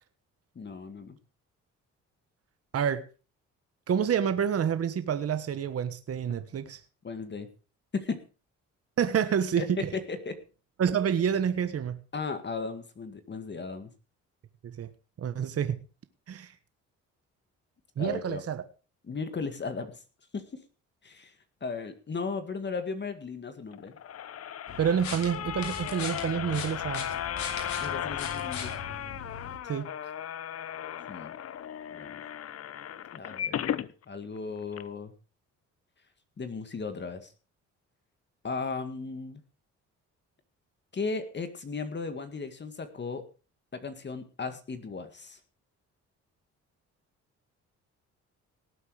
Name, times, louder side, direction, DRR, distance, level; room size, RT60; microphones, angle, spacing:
voice 1, 0.6-1.2 7.0-7.5 7.9-8.2 9.6-9.7 9.9-10.3 12.1-13.9 18.0-18.4 19.0-19.9 20.3-20.6 21.0-21.3 21.6-23.9 27.8-28.7 31.1-31.4 31.9-32.2 33.1-35.1 36.4-37.3 38.4-39.4 40.9-43.2 43.7-45.4, left 4 dB, 35° left, 2.0 m, -36 dB
voice 2, 3.9-6.8 9.0-9.9 10.8-12.0 14.6-14.9 15.2-15.8 16.3-16.5 18.0-18.6 24.8-27.1 29.7-29.9, right 8 dB, 50° right, 1.4 m, -28 dB
sound 1, 23.7-33.9 34.4-34.5 34.7-34.8, left 10 dB, 50° left, 0.8 m, -36 dB
sound 2, 24.7-29.6, left 5 dB, 70° left, 4.1 m, -40 dB
18.5 x 8.0 x 5.0 m
cardioid pair, 90°, 30 cm